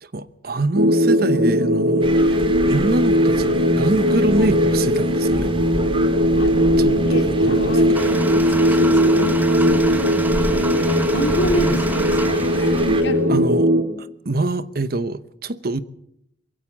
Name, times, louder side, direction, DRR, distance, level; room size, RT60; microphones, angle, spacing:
voice 1, 0.0-5.5 6.8-7.9 13.3-13.7 14.0-15.8, right 2 dB, 50° right, 0.9 m, -25 dB
sound 1, 0.8-13.8, equal, 90° right, 2.4 m, -18 dB
sound 2, 2.0-13.0, right 1 dB, 25° right, 2.3 m, -31 dB
voice 2, 6.4-9.9 11.1-13.3, left 1 dB, 65° left, 2.8 m, -29 dB
sound 3, 7.9-13.6, right 1 dB, 10° right, 0.9 m, -30 dB
22.0 x 16.5 x 7.3 m
head